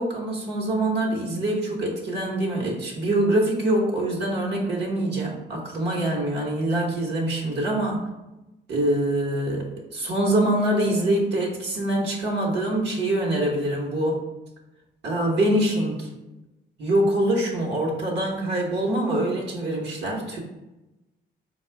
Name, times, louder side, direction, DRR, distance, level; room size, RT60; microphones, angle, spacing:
voice 1, 0.0-8.0 8.7-14.2 15.0-16.1 16.8-20.4, right 1 dB, 60° right, -1 dB, 1.1 m, -24 dB
4.2 x 2.3 x 4.5 m, 0.99 s
cardioid pair, 90°, 20 cm